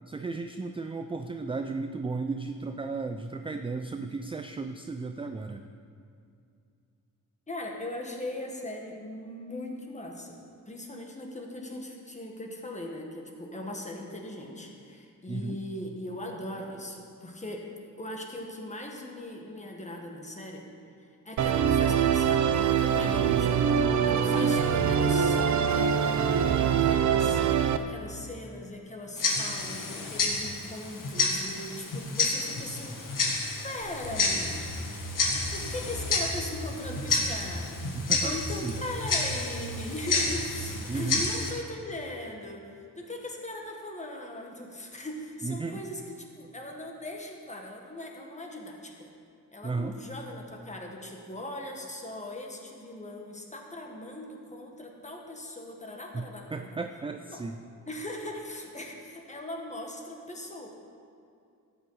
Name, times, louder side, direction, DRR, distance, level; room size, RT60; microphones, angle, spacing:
voice 1, 0.1-5.6 15.3-15.6 24.2-24.3 37.9-38.8 40.9-41.2 45.4-45.8 49.6-50.0 56.1-56.2 56.5-57.6, right 3 dB, 15° right, 6 dB, 0.4 m, -34 dB
voice 2, 7.5-17.7 18.0-23.6 24.0-27.4 27.8-33.1 33.6-34.8 35.5-42.7 43.0-49.1 49.5-56.7 57.3-57.4 57.9-60.7, left 1 dB, 20° left, 1 dB, 1.6 m, -39 dB
Musical instrument, 21.4-27.8, right 7 dB, 60° right, 0.6 m, -24 dB
Tick-tock, 29.2-41.5, left 3 dB, 70° left, 1.7 m, -30 dB
sound 1, 33.8-41.2, right 1 dB, 85° left, 1.8 m, -39 dB
13.0 x 8.7 x 4.8 m, 2.5 s
wide cardioid pair, 130°, 34 cm